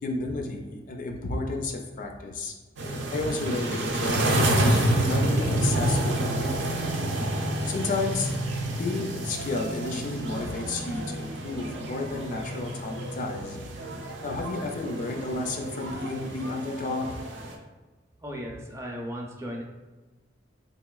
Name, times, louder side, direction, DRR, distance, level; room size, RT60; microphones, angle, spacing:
voice 1, 0.0-2.6 3.1-6.7 7.7-8.4 8.7-13.6 14.2-17.2, left 3 dB, 45° left, 3 dB, 0.3 m, -32 dB
sound 1, 2.8-17.5, right 1 dB, 70° right, 0.5 m, -29 dB
voice 2, 18.2-19.6, equal, 15° right, 0 dB, 0.4 m, -36 dB
3.9 x 2.9 x 2.3 m, 1.2 s
head